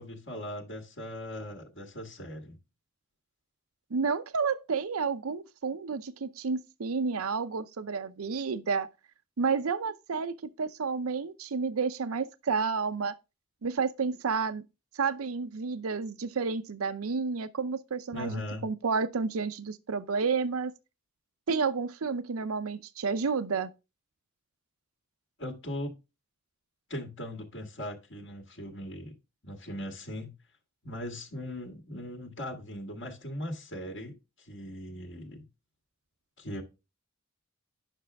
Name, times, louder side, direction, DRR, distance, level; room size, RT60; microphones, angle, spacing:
voice 1, 0.0-2.6 18.1-18.7 25.4-25.9 26.9-29.1 29.4-30.3 30.8-35.5 36.4-36.6, left 1 dB, 60° left, 1.8 m, -39 dB
voice 2, 3.9-8.9 9.4-13.1 13.6-14.6 14.9-20.7 21.5-23.7, right 5 dB, 90° right, 0.6 m, -30 dB
10.0 x 6.1 x 3.4 m
head